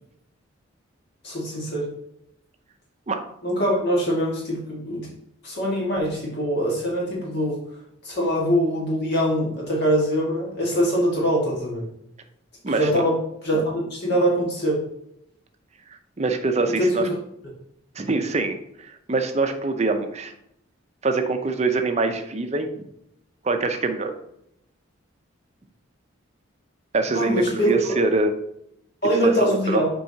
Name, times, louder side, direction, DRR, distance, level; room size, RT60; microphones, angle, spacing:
voice 1, 1.2-1.9 3.4-5.1 5.4-7.6 8.0-11.9 12.8-14.8 16.7-17.1 27.1-27.9 29.0-29.9, equal, 55° left, -3 dB, 1.7 m, -23 dB
voice 2, 16.2-17.1 18.0-20.3 21.0-22.7 23.4-24.1 26.9-28.3 29.2-29.8, right 3 dB, 30° right, 6 dB, 0.6 m, -24 dB
7.4 x 4.7 x 2.8 m, 0.76 s
head